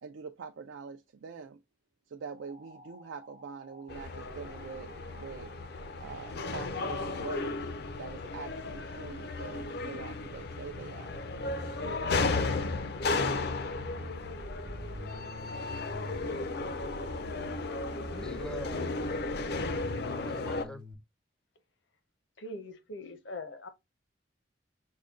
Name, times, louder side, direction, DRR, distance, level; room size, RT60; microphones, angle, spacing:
voice 1, 0.0-1.6 2.1-5.6 6.0-7.7 8.0-11.2 11.8-12.7, right 5 dB, 85° right, 0.4 m, -44 dB
sound 1, 2.3-7.3, equal, 40° right, 0.7 m, -54 dB
sound 2, 3.9-20.7, left 3 dB, 55° left, 0.5 m, -35 dB
Bass guitar, 11.4-20.9, equal, 65° right, 1.0 m, -44 dB
voice 2, 18.0-18.8 20.2-20.8, left 1 dB, 5° left, 0.4 m, -43 dB
voice 3, 22.4-23.7, left 2 dB, 75° left, 0.8 m, -42 dB
6.2 x 2.2 x 3.6 m
head